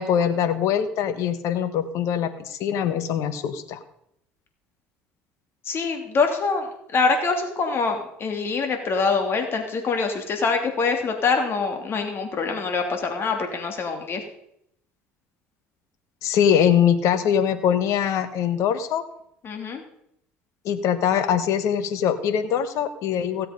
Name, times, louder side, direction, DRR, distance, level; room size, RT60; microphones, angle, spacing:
voice 1, 0.0-3.8 16.2-19.0 20.6-23.5, left 8 dB, 65° left, 11 dB, 1.4 m, -22 dB
voice 2, 5.6-14.2 19.4-19.8, left 4 dB, 45° left, 4 dB, 3.0 m, -24 dB
16.5 x 7.6 x 5.3 m, 0.75 s
supercardioid pair, 80°, 6 cm